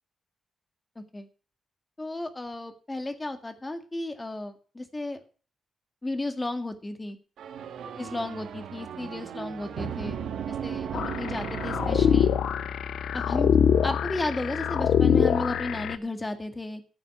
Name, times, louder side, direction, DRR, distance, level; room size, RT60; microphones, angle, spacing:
voice 1, 1.0-1.3 2.0-5.2 6.0-7.2 8.0-10.2 10.5-12.3 13.1-13.5 13.8-16.8, left 2 dB, 15° left, 7 dB, 2.0 m, -33 dB
sound 1, 7.4-12.9, right 8 dB, 85° right, 1.9 m, -36 dB
sound 2, 10.9-16.0, left 8 dB, 75° left, 0.8 m, -24 dB
15.0 x 7.9 x 6.0 m, 0.39 s
wide cardioid pair, 140°, 0 cm